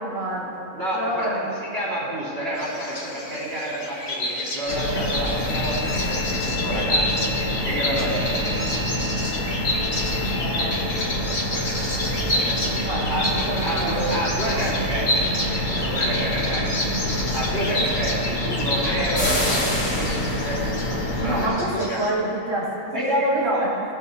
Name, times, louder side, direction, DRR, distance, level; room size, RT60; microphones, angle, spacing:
voice 1, 0.0-0.7 0.9-1.5 10.3-10.9 12.2-12.5 12.8-14.1 21.2-23.7, right 1 dB, 75° right, -6 dB, 2.5 m, -28 dB
voice 2, 0.7-7.3 7.6-8.6 12.5-12.7 13.1-16.9 17.3-20.7 21.2-22.0 22.9-23.8, right 1 dB, 50° right, -7 dB, 3.2 m, -28 dB
Bird vocalization bird call bird song, 2.5-22.1, left 1 dB, 55° left, 1.7 m, -29 dB
sound 1, 4.7-21.5, left 1 dB, 70° left, 2.7 m, -26 dB
18.5 x 7.2 x 2.8 m, 2.7 s
omnidirectional pair, 1.3 m